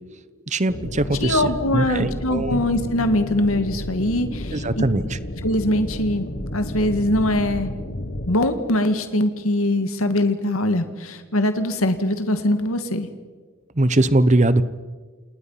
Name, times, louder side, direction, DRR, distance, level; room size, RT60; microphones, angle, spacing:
voice 1, 0.5-2.6 4.5-5.2 13.7-14.6, right 2 dB, 35° right, 14 dB, 1.0 m, -21 dB
sound 1, 0.7-8.4, left 1 dB, 50° left, 1.5 m, -32 dB
voice 2, 1.2-4.8 5.4-6.3 6.5-7.7 8.3-13.1, left 1 dB, 85° left, 8 dB, 2.0 m, -22 dB
28.5 x 28.5 x 5.8 m, 1.4 s
head